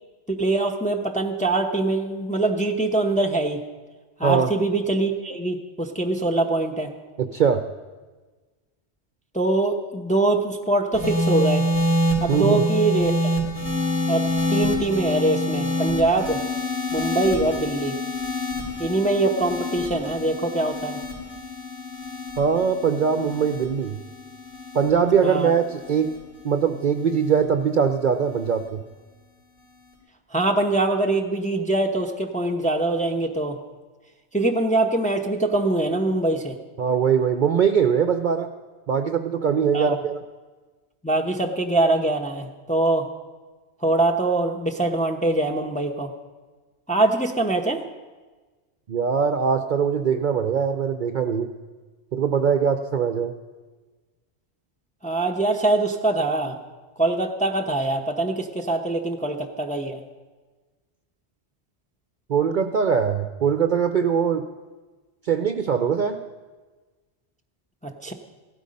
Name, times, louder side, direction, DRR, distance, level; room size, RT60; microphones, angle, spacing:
voice 1, 0.3-3.6 4.2-6.9 9.3-11.7 12.2-13.3 14.1-16.4 16.9-18.0 18.8-21.0 25.2-25.5 30.3-33.6 34.3-36.6 39.7-40.0 41.0-43.1 43.8-46.1 46.9-47.8 55.0-56.5 57.0-60.0 67.8-68.1, right 2 dB, 5° left, 3 dB, 0.9 m, -23 dB
voice 2, 7.2-7.6 12.3-12.6 22.4-24.0 24.7-26.1 26.4-28.8 36.8-38.5 38.9-40.2 48.9-51.5 52.1-53.3 62.3-64.5 65.2-66.2, right 7 dB, 50° right, 8 dB, 0.7 m, -22 dB
sound 1, 10.9-27.4 28.3-28.7, left 1 dB, 30° left, 4.4 m, -27 dB
15.5 x 12.5 x 5.3 m, 1.3 s
omnidirectional pair, 1.1 m